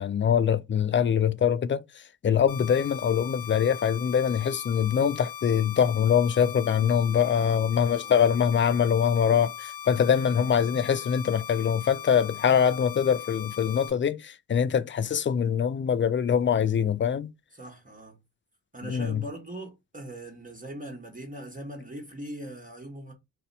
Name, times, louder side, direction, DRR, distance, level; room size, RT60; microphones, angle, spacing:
voice 1, 0.0-1.8 2.2-17.3 18.9-19.2, left 8 dB, 30° left, 0.4 m, -23 dB
sound 1, 2.5-13.9, left 10 dB, 75° left, 1.0 m, -40 dB
voice 2, 7.2-8.3 10.1-10.5 17.5-18.2 18.7-23.1, right 1 dB, 20° right, 1.2 m, -41 dB
2.7 x 2.1 x 3.9 m
supercardioid pair, 40°, 38 cm